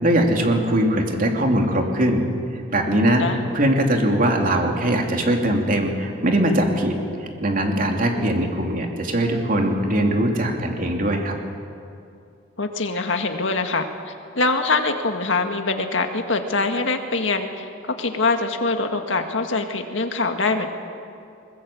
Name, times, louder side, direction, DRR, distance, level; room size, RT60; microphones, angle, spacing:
voice 1, 0.0-2.2 2.7-11.4, right 1 dB, 45° right, 2 dB, 2.9 m, -21 dB
voice 2, 12.6-13.9 14.4-20.7, left 3 dB, 70° left, 5 dB, 2.0 m, -23 dB
21.5 x 20.5 x 8.6 m, 2.5 s
head